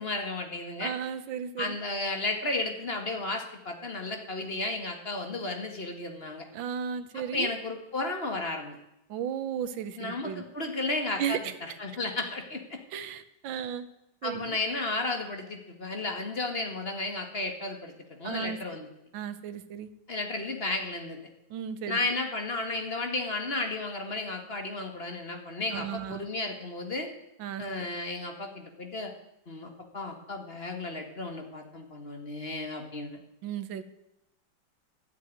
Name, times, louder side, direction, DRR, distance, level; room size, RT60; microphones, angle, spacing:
voice 1, 0.0-0.9 1.6-6.5 7.3-8.8 10.0-12.8 14.2-18.9 20.1-21.2 21.9-27.1 27.6-29.1 29.5-33.2, left 2 dB, 30° left, 4 dB, 1.9 m, -33 dB
voice 2, 0.8-1.7 6.5-7.5 9.1-10.4 11.2-11.5 12.9-13.9 14.2-14.6 18.2-18.6 19.1-19.9 21.5-22.0 25.7-26.2 27.4-27.6 33.4-33.8, right 8 dB, 75° right, 11 dB, 1.7 m, -34 dB
12.5 x 8.1 x 9.4 m, 0.87 s
omnidirectional pair, 2.1 m